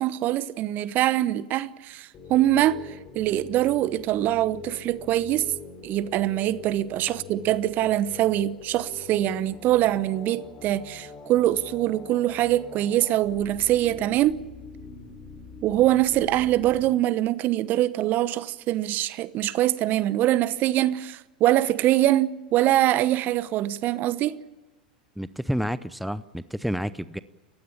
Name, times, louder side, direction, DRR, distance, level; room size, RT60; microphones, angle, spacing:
voice 1, 0.0-5.5 5.8-14.4 15.6-24.4, right 14 dB, 40° right, 1.0 m, -23 dB
sound 1, 2.1-16.9, left 5 dB, 35° left, 4.2 m, -44 dB
voice 2, 25.2-27.2, equal, ahead, 0.7 m, -29 dB
29.5 x 15.5 x 7.4 m
figure-of-eight pair, 90°, 5 cm